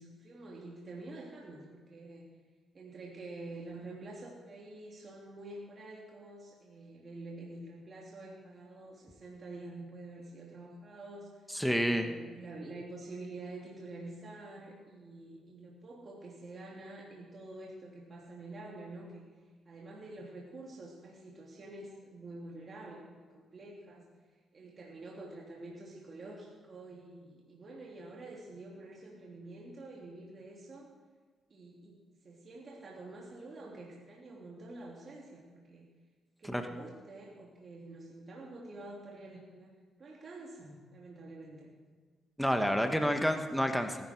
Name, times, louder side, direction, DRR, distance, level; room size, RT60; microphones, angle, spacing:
voice 1, 0.0-2.3 2.7-11.5 11.9-19.3 19.6-24.2 24.5-30.9 31.5-35.9 36.4-39.7 40.0-41.7, right 2 dB, 45° right, -3 dB, 3.1 m, -47 dB
voice 2, 11.5-12.1 36.5-36.6 42.4-44.0, equal, ahead, 5 dB, 1.4 m, -29 dB
19.0 x 12.0 x 4.7 m, 1.4 s
supercardioid pair, 65°, 0 cm